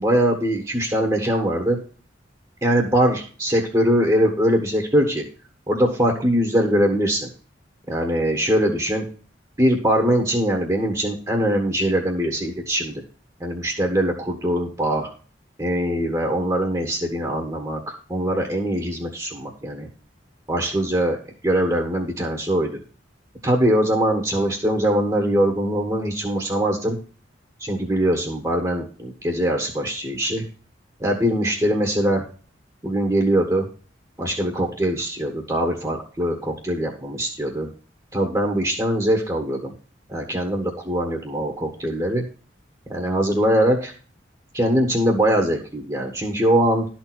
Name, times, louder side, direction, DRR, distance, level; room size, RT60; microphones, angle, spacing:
voice 1, 0.0-1.8 2.6-5.2 5.7-7.3 7.9-9.0 9.6-13.0 13.4-15.1 15.6-17.8 18.1-19.9 20.5-21.2 21.4-22.7 23.4-27.0 27.6-30.4 31.0-32.2 32.8-33.7 34.2-37.7 38.1-39.7 40.1-42.2 42.9-43.9 44.5-46.9, equal, 20° right, 1 dB, 1.4 m, -22 dB
12.0 x 4.4 x 6.1 m, 0.39 s
head